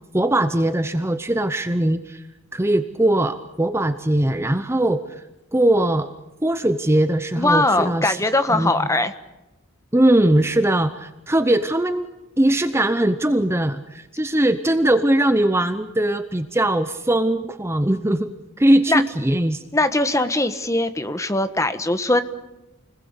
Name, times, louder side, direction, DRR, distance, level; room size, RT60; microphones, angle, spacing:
voice 1, 0.1-2.2 2.5-5.0 5.5-6.1 6.4-8.2 8.5-8.7 9.9-12.1 12.4-19.6, right 1 dB, 15° right, 10 dB, 0.8 m, -20 dB
voice 2, 7.4-9.1 18.9-19.0 19.7-22.2, left 2 dB, 15° left, 10 dB, 1.4 m, -20 dB
29.5 x 20.5 x 8.2 m, 1.0 s
head